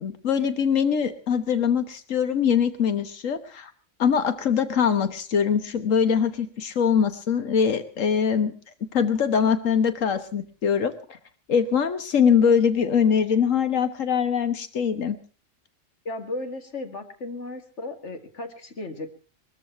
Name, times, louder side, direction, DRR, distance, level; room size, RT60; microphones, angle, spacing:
voice 1, 0.0-3.7 4.0-8.5 8.9-10.9 11.5-15.2, left 7 dB, 90° left, 11 dB, 1.6 m, -22 dB
voice 2, 16.1-19.1, left 2 dB, 65° left, 6 dB, 2.4 m, -35 dB
21.0 x 14.0 x 4.5 m, 0.38 s
omnidirectional pair, 1.3 m